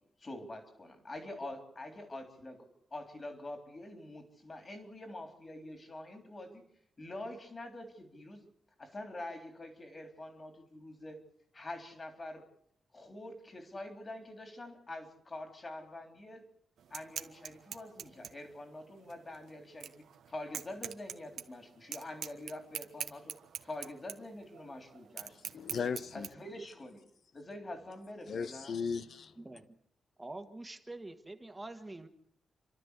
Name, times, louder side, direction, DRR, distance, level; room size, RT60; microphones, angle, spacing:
voice 1, 0.2-6.6 7.0-8.4 8.8-11.2 11.5-12.4 12.9-16.4 16.9-23.3 23.6-25.3 26.1-27.0 27.3-28.8, left 1 dB, 25° left, 3.5 m, -45 dB
sound 1, 16.8-26.3, right 8 dB, 80° right, 1.3 m, -45 dB
voice 2, 25.3-26.3 28.3-29.3, left 6 dB, 55° left, 0.9 m, -37 dB
voice 3, 30.2-32.1, right 2 dB, 10° right, 1.6 m, -45 dB
29.5 x 13.0 x 8.2 m
wide cardioid pair, 170°, 0 cm